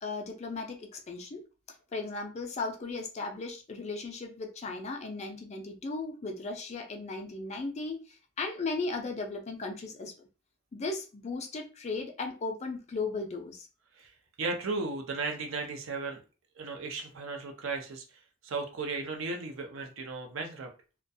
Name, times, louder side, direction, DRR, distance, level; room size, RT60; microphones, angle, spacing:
voice 1, 0.0-1.5 1.9-10.3 10.7-13.7, left 3 dB, 30° left, 3 dB, 0.4 m, -36 dB
voice 2, 14.4-16.2 16.6-18.0 18.4-20.7, right 3 dB, 65° right, 3 dB, 0.6 m, -35 dB
2.3 x 2.1 x 2.6 m, 0.33 s
head